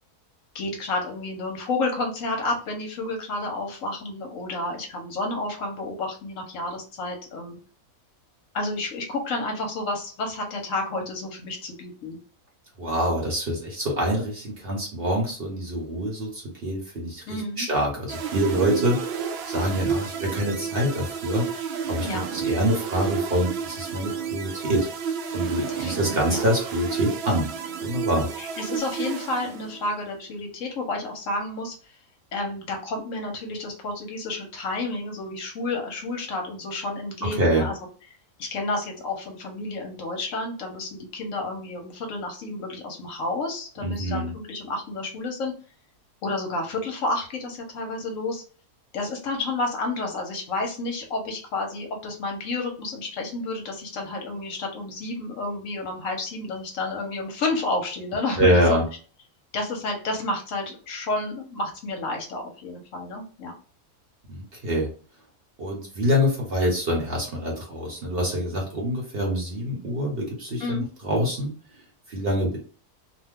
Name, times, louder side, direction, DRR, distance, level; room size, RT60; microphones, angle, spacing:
voice 1, 0.5-7.6 8.5-12.2 17.3-17.7 22.0-22.3 25.8-25.9 26.3-26.4 28.4-32.0 32.3-37.7 38.4-45.5 46.2-48.4 48.9-58.8 59.5-63.5 70.6-70.9, left 2 dB, 65° left, 2 dB, 1.0 m, -30 dB
voice 2, 12.8-19.0 19.5-21.5 21.9-24.9 25.3-27.5 27.8-28.3 37.2-37.7 43.8-44.3 58.4-58.8 64.3-64.9 65.6-71.5 72.1-72.6, equal, 45° right, -1 dB, 0.9 m, -25 dB
sound 1, 18.1-30.0, right 6 dB, 90° right, 0.5 m, -31 dB
2.7 x 2.2 x 3.5 m, 0.40 s
omnidirectional pair, 1.6 m